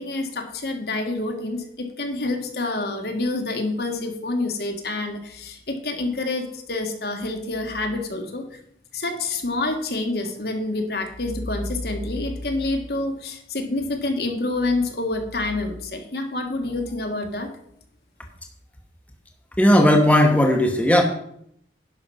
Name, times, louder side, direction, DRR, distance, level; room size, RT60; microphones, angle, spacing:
voice 1, 0.0-8.6 8.9-17.5, left 2 dB, 60° left, 4 dB, 1.5 m, -27 dB
voice 2, 19.6-21.0, left 1 dB, 10° left, 2 dB, 1.1 m, -16 dB
11.0 x 5.7 x 5.5 m, 0.70 s
head